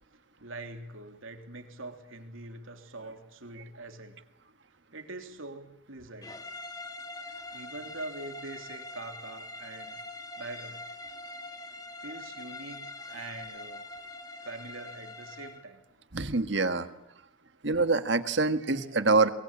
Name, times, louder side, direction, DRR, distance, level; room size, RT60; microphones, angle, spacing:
voice 1, 0.4-4.1 4.9-6.4 7.5-10.0 10.4-10.8 12.0-13.9 14.4-15.8, right 2 dB, 90° right, 6 dB, 3.3 m, -43 dB
sound 1, 6.2-15.7, left 2 dB, 20° left, 1.7 m, -43 dB
voice 2, 16.1-16.9 17.6-19.3, right 3 dB, 60° right, 10 dB, 1.6 m, -25 dB
23.5 x 22.5 x 8.8 m, 0.81 s
head